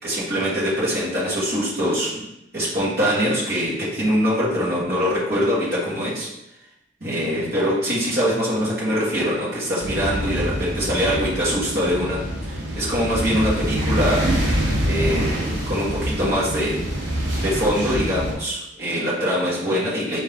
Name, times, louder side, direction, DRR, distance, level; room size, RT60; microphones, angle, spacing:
voice 1, 0.0-2.3 2.5-6.3 7.0-14.3 14.9-16.8 17.4-20.2, equal, 55° right, -8 dB, 1.4 m, -23 dB
sound 1, 9.8-18.3, equal, 80° right, 0.9 m, -25 dB
4.2 x 2.7 x 3.5 m, 0.86 s
head